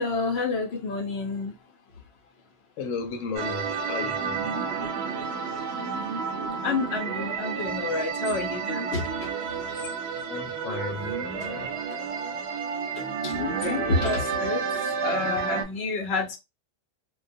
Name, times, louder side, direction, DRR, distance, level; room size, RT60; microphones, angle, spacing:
voice 1, 0.0-1.5 6.6-9.3 9.7-9.8 11.5-11.7 13.0-14.6 15.0-16.4, left 3 dB, 60° left, 0.9 m, -29 dB
voice 2, 2.8-4.4 10.3-11.7, left 5 dB, 85° left, 1.0 m, -34 dB
sound 1, 3.3-15.6, right 6 dB, 65° right, 0.8 m, -30 dB
2.3 x 2.2 x 2.5 m
omnidirectional pair, 1.3 m